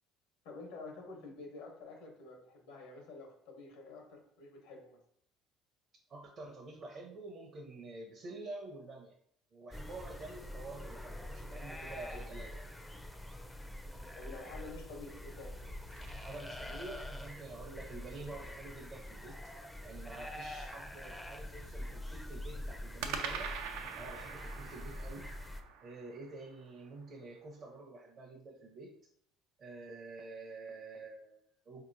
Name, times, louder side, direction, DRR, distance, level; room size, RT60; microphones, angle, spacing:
voice 1, 0.4-5.0 13.8-15.6, left 3 dB, 90° left, 1 dB, 1.1 m, -49 dB
voice 2, 6.1-9.2 9.5-12.7 16.2-19.4 19.8-23.6 24.0-25.3 25.8-28.9 29.6-31.8, right 2 dB, 40° right, -1 dB, 0.6 m, -48 dB
sound 1, 9.7-25.6, left 1 dB, 10° left, 0.4 m, -45 dB
sound 2, 15.3-17.2 23.0-27.3, right 6 dB, 90° right, 0.4 m, -44 dB
4.3 x 2.8 x 2.6 m, 0.65 s
cardioid pair, 120°, 0 cm